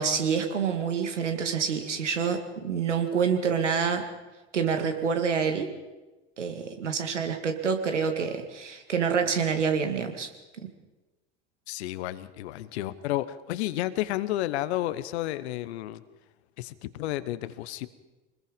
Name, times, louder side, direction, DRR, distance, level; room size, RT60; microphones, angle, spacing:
voice 1, 0.0-4.0 4.5-5.7 6.4-10.3 10.6-10.7, right 6 dB, 80° right, 6 dB, 2.3 m, -27 dB
voice 2, 11.7-16.0 16.6-17.9, left 14 dB, 65° left, 15 dB, 1.1 m, -31 dB
25.0 x 20.5 x 5.3 m, 1.1 s
figure-of-eight pair, 70°, 36 cm